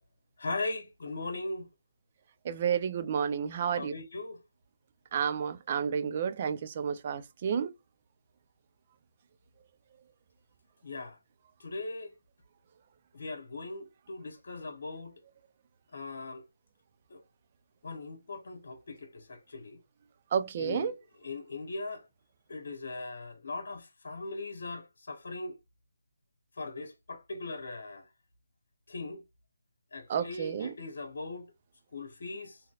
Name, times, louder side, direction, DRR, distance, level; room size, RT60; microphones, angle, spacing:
voice 1, 0.4-1.7 3.8-4.4 10.8-11.2 11.6-12.1 13.1-15.1 15.9-16.4 17.1-17.2 17.8-19.8 20.6-20.9 21.2-22.1 22.5-25.6 26.6-28.1 28.9-29.2 29.9-31.5 31.9-32.6, left 3 dB, 60° left, 1.0 m, -39 dB
voice 2, 2.4-3.9 5.1-7.7 20.3-21.0 30.1-30.7, right 7 dB, 35° right, 0.4 m, -31 dB
3.8 x 2.7 x 2.3 m
figure-of-eight pair, 155°, 0 cm